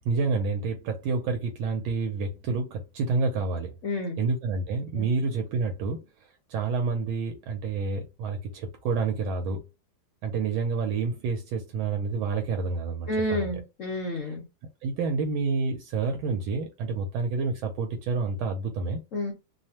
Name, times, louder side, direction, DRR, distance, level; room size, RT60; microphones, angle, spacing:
voice 1, 0.0-3.7 4.2-6.0 6.5-9.6 10.2-13.5 14.8-19.0, right 4 dB, 80° right, 1.4 m, -28 dB
voice 2, 3.8-4.2 5.0-5.1 13.1-14.4 19.1-19.3, left 1 dB, 60° left, 0.8 m, -30 dB
3.3 x 2.0 x 2.8 m
omnidirectional pair, 2.2 m